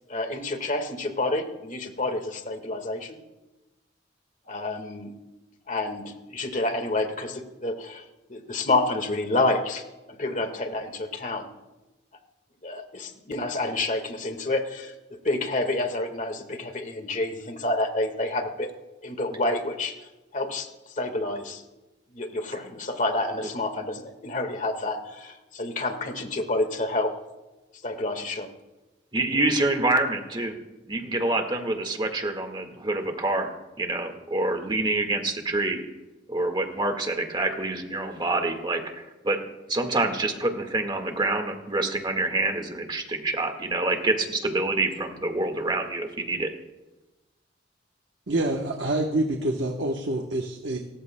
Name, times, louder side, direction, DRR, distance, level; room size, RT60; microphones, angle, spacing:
voice 1, 0.1-3.2 4.5-5.1 5.7-8.0 8.3-11.5 12.6-18.7 19.0-19.9 20.3-20.7 21.0-21.6 22.1-27.1 27.8-28.5, left 2 dB, 45° left, 6 dB, 1.7 m, -29 dB
voice 2, 29.1-30.5 30.9-33.5 33.8-35.8 36.3-39.4 39.7-46.5, right 2 dB, 25° right, 4 dB, 1.7 m, -26 dB
voice 3, 48.3-50.8, right 1 dB, 70° right, 2 dB, 1.1 m, -26 dB
29.5 x 14.5 x 2.2 m, 1.0 s
head